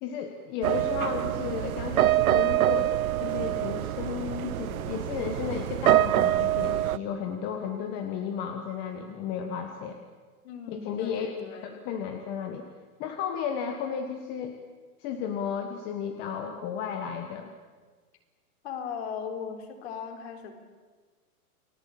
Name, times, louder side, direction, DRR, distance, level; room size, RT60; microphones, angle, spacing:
voice 1, 0.0-2.9 3.2-10.0 10.7-12.7 13.0-14.6 15.0-17.5, left 7 dB, 25° left, 5 dB, 1.5 m, -33 dB
sound 1, 0.6-7.0, right 14 dB, 65° right, 0.7 m, -25 dB
voice 2, 10.4-11.8 18.6-20.6, left 7 dB, 45° left, 5 dB, 4.2 m, -38 dB
29.5 x 20.0 x 8.7 m, 1.5 s
hypercardioid pair, 165°, 45 cm